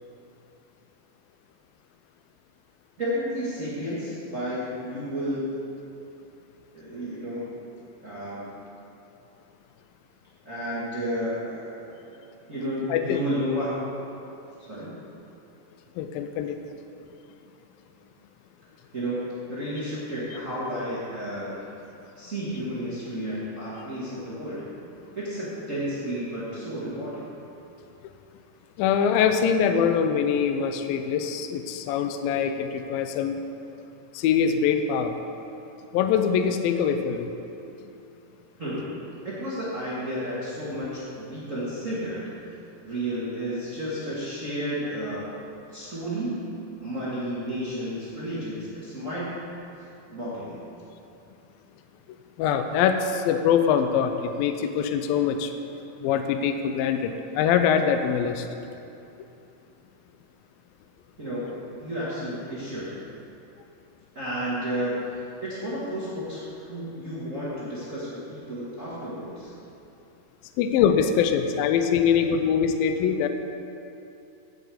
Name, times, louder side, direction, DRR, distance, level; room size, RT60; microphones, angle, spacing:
voice 1, 3.0-5.5 6.7-7.5 8.0-8.5 10.4-12.2 12.5-13.7 14.7-14.9 18.9-21.6 22.1-24.6 25.1-27.2 38.6-38.9 39.2-42.3 42.8-45.3 45.7-46.4 46.8-49.3 49.8-50.5 61.2-61.4 61.8-62.9 64.1-69.5, equal, 40° right, -9 dB, 1.1 m, -32 dB
voice 2, 12.9-13.2 16.0-16.6 28.8-33.4 34.1-35.1 35.9-37.3 52.4-55.5 56.0-58.5 70.6-73.3, left 7 dB, 85° left, 7 dB, 2.1 m, -23 dB
7.9 x 7.6 x 7.7 m, 2.7 s
omnidirectional pair, 4.7 m